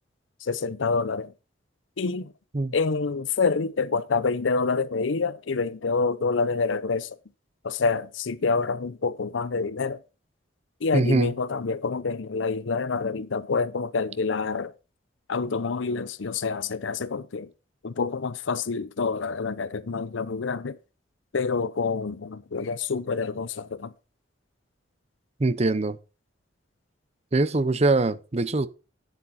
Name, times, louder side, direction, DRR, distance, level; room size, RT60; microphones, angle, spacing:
voice 1, 0.4-1.3 2.0-2.3 2.7-7.2 7.6-10.0 10.8-14.7 15.3-17.5 17.8-20.8 21.3-23.9, left 4 dB, 80° left, 0.6 m, -27 dB
voice 2, 10.9-11.3 25.4-26.0 27.3-28.7, right 2 dB, 35° right, 0.7 m, -23 dB
9.9 x 8.0 x 4.2 m
head